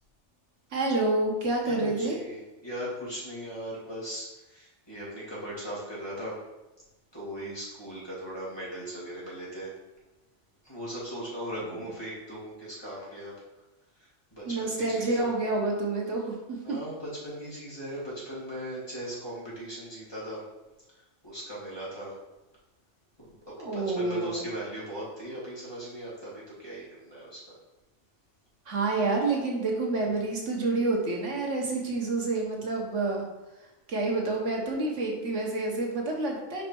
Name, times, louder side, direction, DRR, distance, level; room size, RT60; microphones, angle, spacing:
voice 1, 0.7-2.2 11.7-11.8 14.4-16.8 23.6-24.4 28.7-33.3 33.9-36.6, right 2 dB, 80° right, 0 dB, 1.6 m, -28 dB
voice 2, 1.6-6.4 7.1-9.7 10.6-13.3 14.0-15.3 16.6-20.4 20.9-22.1 23.2-23.3 23.7-27.4, equal, 20° left, -8 dB, 2.6 m, -38 dB
5.3 x 5.0 x 4.5 m, 1.0 s
omnidirectional pair, 1.2 m